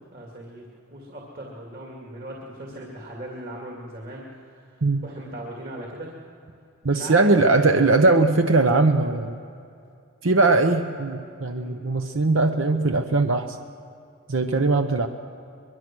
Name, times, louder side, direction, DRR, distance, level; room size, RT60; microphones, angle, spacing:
voice 1, 0.1-6.1 6.8-7.8 10.7-10.9 11.5-11.8 14.5-14.8, right 1 dB, 40° right, -1 dB, 2.5 m, -39 dB
voice 2, 6.8-9.4 10.2-13.6 14.3-15.1, right 3 dB, 60° right, 6 dB, 0.9 m, -20 dB
23.5 x 22.5 x 6.2 m, 2.5 s
head